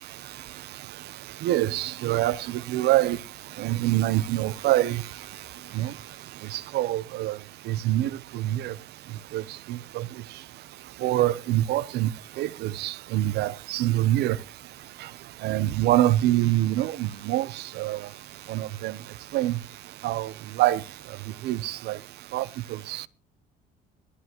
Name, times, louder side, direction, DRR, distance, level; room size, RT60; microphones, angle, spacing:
voice 1, 0.0-8.8 9.1-10.4 10.8-14.4 15.0-22.0 22.3-23.1, right 14 dB, 75° right, 0.7 m, -27 dB
18.0 x 13.0 x 3.0 m
cardioid pair, 110°, 17 cm